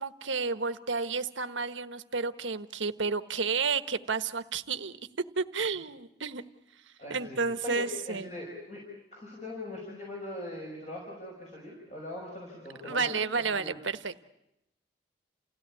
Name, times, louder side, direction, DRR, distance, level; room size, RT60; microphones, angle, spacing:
voice 1, 0.0-5.0 5.4-6.4 7.1-8.3 12.9-14.2, right 4 dB, 80° right, 11 dB, 1.2 m, -31 dB
voice 2, 7.0-8.8 9.1-13.2 13.6-13.8, left 1 dB, 35° left, -3 dB, 6.1 m, -41 dB
29.5 x 16.5 x 9.7 m, 0.86 s
head